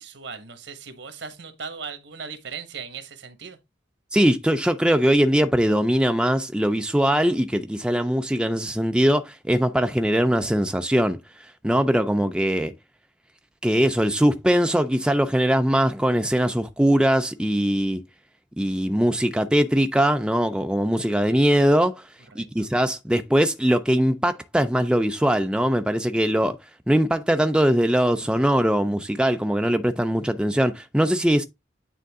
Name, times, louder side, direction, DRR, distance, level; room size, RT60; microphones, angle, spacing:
voice 1, 0.0-3.6 22.3-22.7, right 5 dB, 70° right, 1.3 m, -38 dB
voice 2, 4.1-11.2 11.6-12.7 13.6-18.0 18.6-22.1 22.4-26.6 26.9-31.4, equal, 5° right, 0.4 m, -21 dB
9.2 x 3.7 x 3.6 m
head